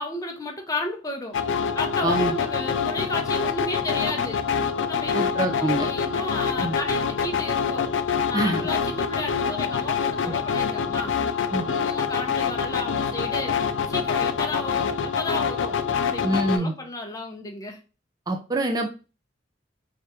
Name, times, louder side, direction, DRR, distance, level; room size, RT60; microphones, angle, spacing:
voice 1, 0.0-1.4 1.7-4.4 4.9-7.9 8.2-11.2 11.7-13.6 13.9-17.8, left 2 dB, 20° left, 2 dB, 0.7 m, -33 dB
sound 1, 1.3-16.6, left 6 dB, 80° left, 0.4 m, -26 dB
voice 2, 2.0-2.3 5.1-5.9 6.6-6.8 8.3-8.6 10.3-10.4 11.5-11.7 16.2-16.7 18.3-18.9, right 2 dB, 20° right, 3 dB, 0.4 m, -25 dB
3.4 x 2.4 x 4.2 m, 0.33 s
head